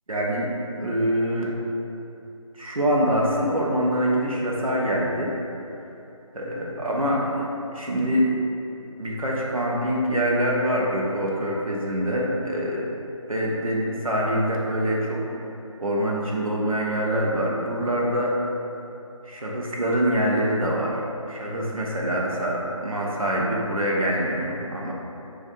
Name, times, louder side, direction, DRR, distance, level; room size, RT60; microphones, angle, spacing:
voice 1, 0.1-1.5 2.5-5.3 6.3-8.3 9.0-12.9 13.3-15.3 15.8-18.3 19.2-21.0 21.3-24.9, equal, 80° right, -3 dB, 0.7 m, -25 dB
2.5 x 2.4 x 4.0 m, 2.8 s
figure-of-eight pair, 160°, 17 cm